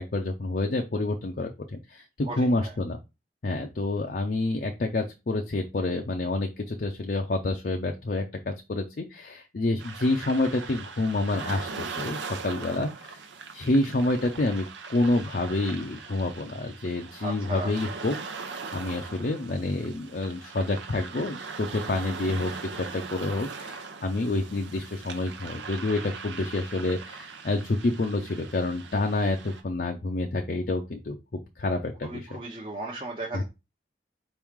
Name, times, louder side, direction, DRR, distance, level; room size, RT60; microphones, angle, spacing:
voice 1, 0.0-3.0 3.4-13.2 13.5-32.4 33.3-33.4, left 2 dB, 50° left, 2 dB, 0.5 m, -28 dB
voice 2, 2.2-2.7 12.7-12.9 17.2-17.8 18.9-19.0 32.0-33.4, right 2 dB, 30° right, -2 dB, 0.8 m, -36 dB
sound 1, 9.8-29.6, right 5 dB, 85° right, 0.8 m, -40 dB
4.7 x 3.0 x 3.6 m, 0.26 s
head